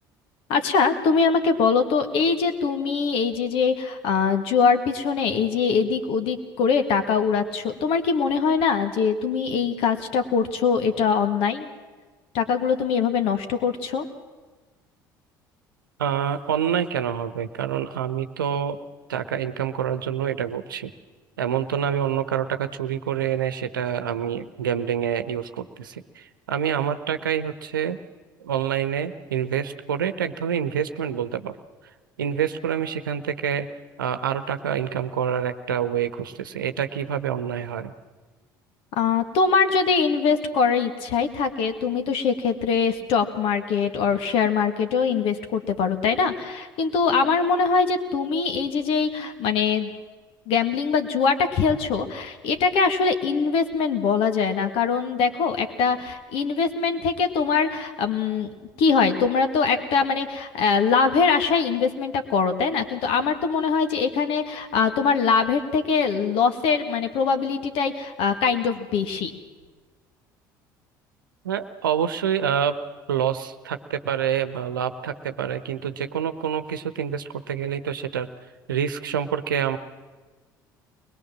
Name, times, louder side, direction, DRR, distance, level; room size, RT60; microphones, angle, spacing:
voice 1, 0.5-11.7 12.3-14.1 38.9-49.9 50.5-58.5 58.8-69.3, left 5 dB, 60° left, 8 dB, 2.0 m, -22 dB
voice 2, 16.0-18.8 19.1-20.9 21.4-28.0 28.4-31.6 32.2-33.7 34.0-37.9 71.4-72.7 73.1-78.3 78.7-79.8, right 8 dB, 80° right, 10 dB, 1.0 m, -27 dB
22.0 x 21.0 x 7.5 m, 1.3 s
figure-of-eight pair, 60°, 11 cm